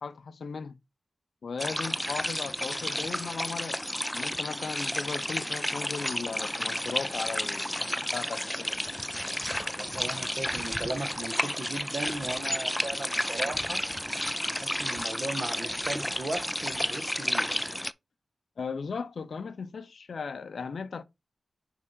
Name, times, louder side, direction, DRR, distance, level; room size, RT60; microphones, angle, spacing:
voice 1, 0.0-0.8 1.4-3.8 4.1-8.7 18.6-21.0, left 5 dB, 80° left, 0.5 m, -37 dB
sound 1, 1.6-17.9, equal, 5° left, 0.3 m, -32 dB
voice 2, 9.8-13.8 14.4-17.6, right 2 dB, 45° right, 1.4 m, -37 dB
5.8 x 3.6 x 4.5 m
wide cardioid pair, 65°, 0 cm